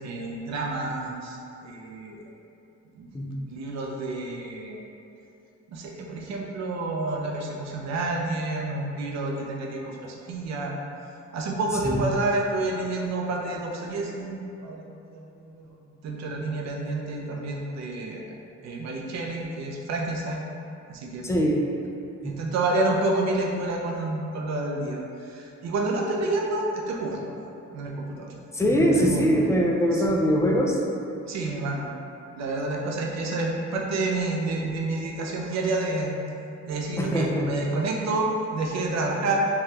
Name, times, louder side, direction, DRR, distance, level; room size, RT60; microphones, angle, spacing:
voice 1, 0.0-2.3 3.0-4.8 5.7-10.8 11.3-15.7 16.0-18.3 18.6-20.4 20.9-21.3 22.2-27.3 27.7-28.3 28.9-29.3 30.0-30.1 31.3-31.9 32.3-36.2 36.6-39.5, right 2 dB, 60° right, -1 dB, 0.6 m, -29 dB
voice 2, 21.2-21.6 22.2-22.4 28.5-30.8 37.0-37.5, equal, 10° left, -1 dB, 0.3 m, -22 dB
3.3 x 2.3 x 2.9 m, 2.7 s
cardioid pair, 90°, 30 cm